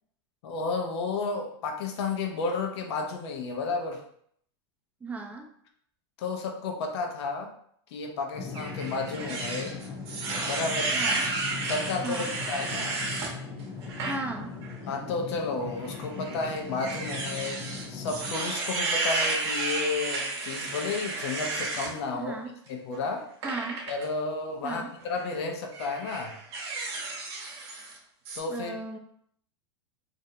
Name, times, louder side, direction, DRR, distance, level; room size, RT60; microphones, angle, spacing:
voice 1, 0.4-4.0 6.2-7.5 7.9-9.8 10.5-10.9 11.6-13.0 14.9-17.6 17.9-22.4 22.7-23.2 23.9-26.4 28.4-28.8, left 4 dB, 70° left, 2 dB, 0.6 m, -32 dB
voice 2, 5.0-5.5 10.9-11.3 12.0-12.3 14.0-14.6 22.1-22.6 23.4-23.8 24.6-24.9 28.5-29.0, right 3 dB, 10° right, 3 dB, 0.3 m, -35 dB
sound 1, 8.3-18.3, left 4 dB, 35° left, 0.7 m, -39 dB
sound 2, 8.5-13.3 13.8-14.2 14.6-14.7 15.8-21.9 23.4-24.1 25.0-25.3 25.7-28.0 28.3-28.4, right 3 dB, 65° right, 0.7 m, -32 dB
2.5 x 2.1 x 2.7 m, 0.66 s
supercardioid pair, 135°, 15 cm